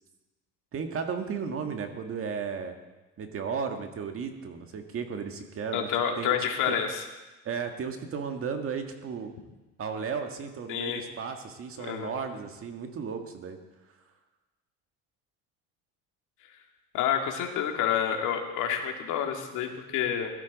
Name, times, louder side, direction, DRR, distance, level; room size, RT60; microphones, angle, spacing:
voice 1, 0.7-2.8 3.2-5.9 6.2-6.8 7.4-9.3 9.8-13.6, right 6 dB, 40° right, 5 dB, 1.6 m, -34 dB
voice 2, 5.7-7.0 10.7-11.0 11.9-12.1 16.9-20.3, left 8 dB, 65° left, 3 dB, 2.1 m, -28 dB
16.5 x 13.0 x 4.1 m, 1.1 s
cardioid pair, 110°, 32 cm